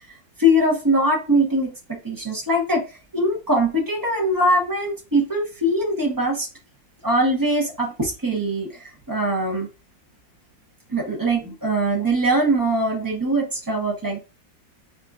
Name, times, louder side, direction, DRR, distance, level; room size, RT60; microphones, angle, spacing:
voice 1, 0.1-6.5 7.0-9.7 10.9-14.2, right 1 dB, 30° right, -1 dB, 0.4 m, -22 dB
5.1 x 2.6 x 2.3 m, 0.31 s
omnidirectional pair, 2.0 m